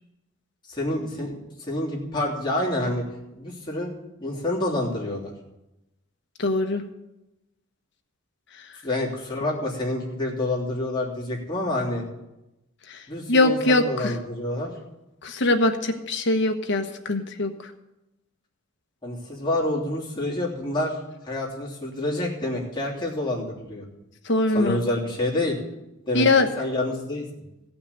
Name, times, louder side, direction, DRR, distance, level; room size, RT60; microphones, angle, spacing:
voice 1, 0.7-3.0 3.3-3.9 4.2-5.3 8.8-12.0 13.1-14.7 19.0-21.0 21.2-23.8 24.5-25.6 26.0-26.3 26.6-27.3, left 1 dB, 20° left, -4 dB, 3.2 m, -28 dB
voice 2, 6.4-6.8 12.9-13.0 13.3-14.1 15.2-17.5 24.3-24.8 26.1-26.5, left 2 dB, 60° left, 5 dB, 1.2 m, -22 dB
16.0 x 6.0 x 8.3 m, 0.95 s
head